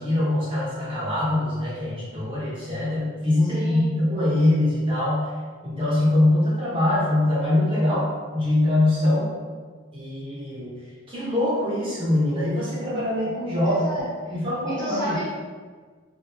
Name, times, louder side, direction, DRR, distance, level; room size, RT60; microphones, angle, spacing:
voice 1, 0.0-5.3 5.6-8.1 8.3-9.3 9.9-10.7 11.1-13.9 14.3-15.1, left 1 dB, 25° right, -8 dB, 0.9 m, -23 dB
voice 2, 3.5-3.9 13.6-15.3, right 1 dB, 20° left, -11 dB, 0.9 m, -33 dB
3.3 x 2.5 x 2.8 m, 1.5 s
head